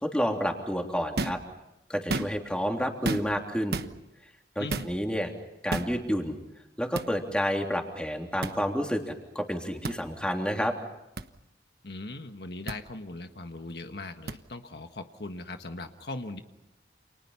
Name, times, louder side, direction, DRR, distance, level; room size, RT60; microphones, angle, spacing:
voice 1, 0.0-1.4 1.9-3.8 4.5-5.3 5.6-6.4 6.8-10.7, equal, 5° left, 2 dB, 3.2 m, -29 dB
sound 1, 1.2-1.5 2.0-2.5 3.0-3.4 3.7-3.9 4.7-4.9 5.7-5.9 6.9-7.1 8.4-8.6 9.8-10.0 11.2-11.3 12.7-12.8 14.3-14.4, right 2 dB, 60° right, 1.2 m, -31 dB
voice 2, 4.6-4.9 11.8-16.4, left 2 dB, 65° left, 7 dB, 1.5 m, -39 dB
29.5 x 28.5 x 5.8 m, 0.91 s
head